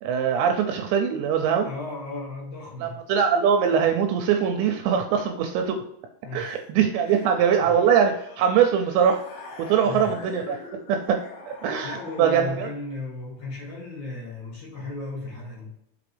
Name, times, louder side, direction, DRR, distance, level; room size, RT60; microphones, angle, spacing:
voice 1, 0.0-1.7 2.8-5.8 6.3-9.2 9.6-10.6 10.9-12.7, right 7 dB, 85° right, 5 dB, 2.6 m, -22 dB
voice 2, 1.6-3.0 6.2-6.6 7.0-7.3 7.6-7.7 9.8-10.1 11.8-15.7, left 2 dB, 55° left, -4 dB, 2.6 m, -35 dB
sound 1, 7.0-12.9, left 4 dB, 75° left, 1.8 m, -44 dB
6.0 x 5.3 x 3.3 m, 0.79 s
omnidirectional pair, 5.5 m